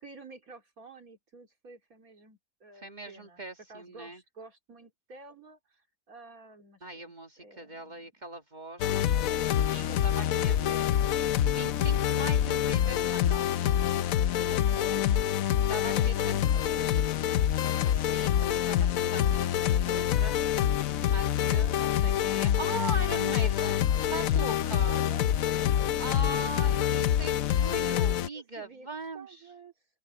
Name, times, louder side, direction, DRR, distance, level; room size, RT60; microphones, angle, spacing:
voice 1, 0.0-3.4 3.7-8.1 10.3-11.0 14.5-15.1 15.9-17.0 24.9-25.2 25.7-26.7 28.3-29.7, right 4 dB, 75° right, 3.4 m, -50 dB
voice 2, 2.8-4.2 6.8-10.9 11.5-13.5 15.7-16.4 17.8-20.4 21.1-25.0 26.0-29.3, right 2 dB, 30° right, 1.7 m, -40 dB
sound 1, 8.8-28.3, left 10 dB, 70° left, 1.1 m, -26 dB
open air
omnidirectional pair, 1.5 m